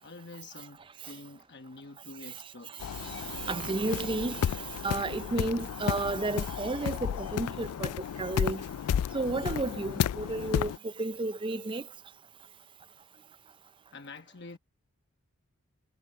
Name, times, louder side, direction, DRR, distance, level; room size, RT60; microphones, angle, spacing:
voice 1, 0.0-2.8 13.9-14.6, left 3 dB, 50° left, 1.1 m, -47 dB
voice 2, 2.3-8.6 9.1-11.9, right 3 dB, 20° right, 0.4 m, -33 dB
sound 1, 2.8-10.8, left 9 dB, 90° left, 0.3 m, -33 dB
head